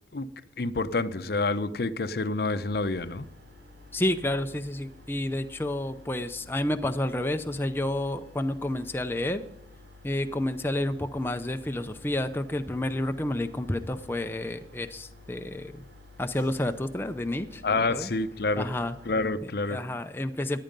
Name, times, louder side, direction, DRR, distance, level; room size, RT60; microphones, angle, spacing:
voice 1, 0.6-3.3 17.6-18.7 19.0-19.8, left 3 dB, 60° left, 0.7 m, -28 dB
sound 1, 2.7-19.3, left 2 dB, 80° right, 4.1 m, -51 dB
voice 2, 3.9-9.4 10.0-15.8 16.2-17.6 17.9-18.1 18.6-18.9 19.4-20.6, left 1 dB, 10° left, 0.5 m, -30 dB
14.5 x 10.0 x 5.3 m
head